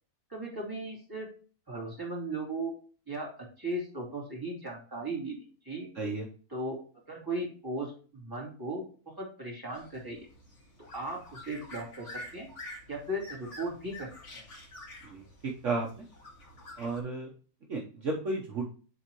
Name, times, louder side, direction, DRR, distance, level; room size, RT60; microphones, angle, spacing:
voice 1, 0.3-1.3 1.7-2.7 3.1-5.9 6.5-6.8 7.1-10.3 10.9-12.5 12.9-14.1 14.3-14.4, right 1 dB, 15° right, -2 dB, 2.8 m, -37 dB
voice 2, 5.9-6.3 15.0-16.0 16.8-17.3 17.7-18.7, right 3 dB, 55° right, -1 dB, 1.4 m, -33 dB
sound 1, 9.7-17.0, left 1 dB, 50° left, 2.2 m, -48 dB
11.0 x 3.9 x 3.0 m, 0.39 s
omnidirectional pair, 1.6 m